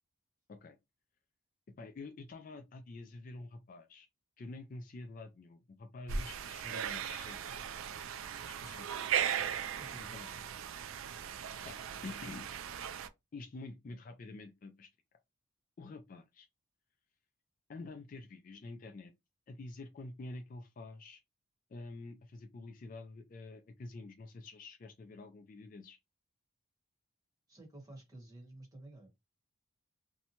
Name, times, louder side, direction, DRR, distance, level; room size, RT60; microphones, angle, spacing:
voice 1, 1.8-4.1 4.4-7.4 8.4-8.9 10.0-10.3 11.0-11.2 11.7-12.5 13.3-14.9 15.8-16.5 17.7-19.1 19.5-21.2 21.7-26.0, left 3 dB, 40° left, 0.3 m, -48 dB
sound 1, 6.1-13.1, right 8 dB, 70° right, 0.3 m, -38 dB
voice 2, 9.7-10.1 27.5-29.1, right 2 dB, 15° right, 1.0 m, -52 dB
2.7 x 2.1 x 2.8 m
head